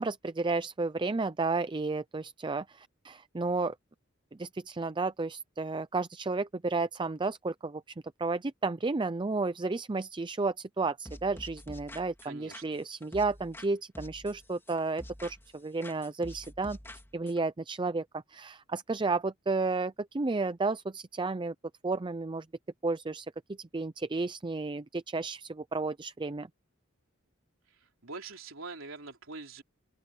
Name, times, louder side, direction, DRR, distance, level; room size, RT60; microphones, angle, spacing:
voice 1, 0.0-3.7 4.4-7.8 8.2-16.8 17.1-21.5 21.8-22.5 22.8-23.3 23.6-26.5, right 3 dB, 25° right, 0.5 m, -32 dB
sound 1, 11.1-13.7 14.0-15.6 15.8-17.4, left 1 dB, 10° left, 3.0 m, -47 dB
voice 2, 12.2-12.6 28.0-29.6, right 3 dB, 75° right, 3.7 m, -43 dB
open air
head